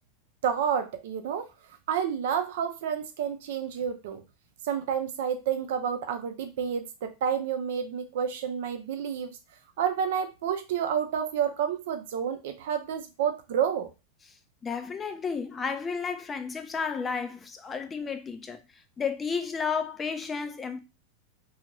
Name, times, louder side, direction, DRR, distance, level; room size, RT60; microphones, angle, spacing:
voice 1, 0.4-1.5 1.9-4.2 4.6-9.4 9.8-13.9, right 8 dB, 70° right, 0.5 m, -29 dB
voice 2, 14.6-18.6 19.0-20.8, left 5 dB, 20° left, 0.4 m, -32 dB
2.5 x 2.4 x 3.0 m
hypercardioid pair, 105°, 0 cm